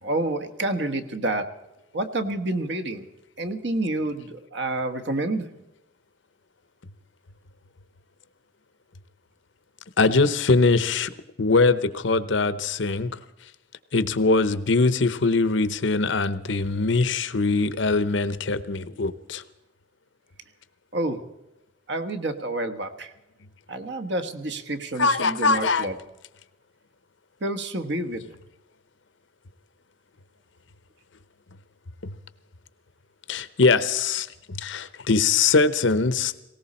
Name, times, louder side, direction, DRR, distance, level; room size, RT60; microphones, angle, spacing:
voice 1, 0.0-1.5 1.9-3.0 3.4-5.5 20.9-21.2 21.9-23.1 23.7-25.9 27.4-28.4, right 2 dB, 60° right, 8 dB, 1.3 m, -28 dB
voice 2, 10.0-11.1 11.4-13.1 13.9-19.4 25.0-25.9 32.0-32.1 33.3-36.3, left 3 dB, 70° left, 15 dB, 0.8 m, -22 dB
19.0 x 17.5 x 4.3 m, 0.97 s
head